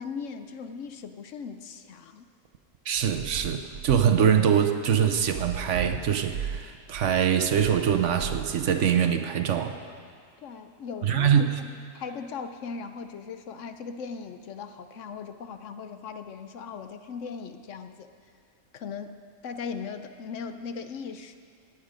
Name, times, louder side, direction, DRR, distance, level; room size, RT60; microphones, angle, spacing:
voice 1, 0.0-2.2 10.4-11.3 11.6-11.7 11.9-18.1 18.7-19.2 19.4-21.3, left 5 dB, 65° left, 8 dB, 1.0 m, -38 dB
sound 1, 2.4-9.0, right 8 dB, 85° right, 1.1 m, -36 dB
voice 2, 2.9-9.8 11.0-11.6, right 8 dB, 65° right, 7 dB, 1.0 m, -23 dB
17.5 x 9.5 x 5.1 m, 2.2 s
omnidirectional pair, 1.5 m